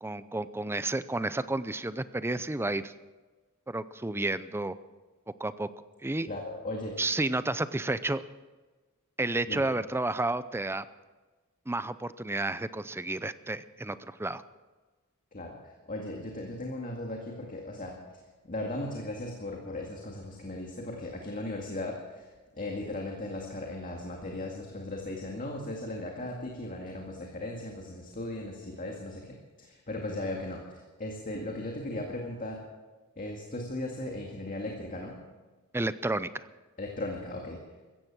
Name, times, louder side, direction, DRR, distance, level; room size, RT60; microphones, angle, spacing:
voice 1, 0.0-2.9 3.7-4.8 5.4-5.7 6.0-6.3 7.0-8.2 9.2-10.9 11.7-14.4 35.7-36.5, right 2 dB, 10° right, 14 dB, 0.5 m, -31 dB
voice 2, 6.3-7.0 9.5-9.6 15.3-15.6 15.9-18.2 18.5-22.3 22.6-32.6 33.2-35.2 36.8-37.6, left 1 dB, 40° left, 0 dB, 2.1 m, -37 dB
16.0 x 14.5 x 6.2 m, 1.3 s
head